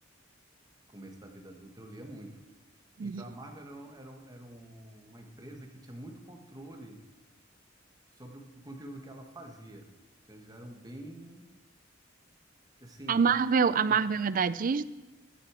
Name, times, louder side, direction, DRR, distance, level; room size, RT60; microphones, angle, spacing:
voice 1, 0.9-2.4 3.0-7.0 8.1-9.9 10.3-11.4 12.8-13.4 13.9-14.0, right 1 dB, 20° right, 3 dB, 1.5 m, -47 dB
voice 2, 13.1-14.8, right 6 dB, 45° right, 16 dB, 0.4 m, -26 dB
13.0 x 9.0 x 5.0 m, 1.1 s
head